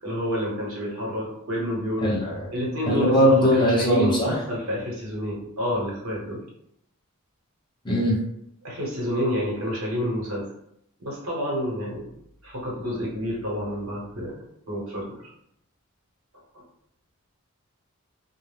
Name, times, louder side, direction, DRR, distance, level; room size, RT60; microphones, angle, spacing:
voice 1, 0.0-2.1 2.5-6.4 8.6-10.5 11.0-12.1 12.4-14.3 14.7-15.2, equal, 70° right, -4 dB, 1.0 m, -29 dB
voice 2, 2.0-2.5 2.9-4.3 7.8-8.2, equal, 20° left, -5 dB, 0.7 m, -20 dB
2.3 x 2.1 x 3.2 m, 0.74 s
head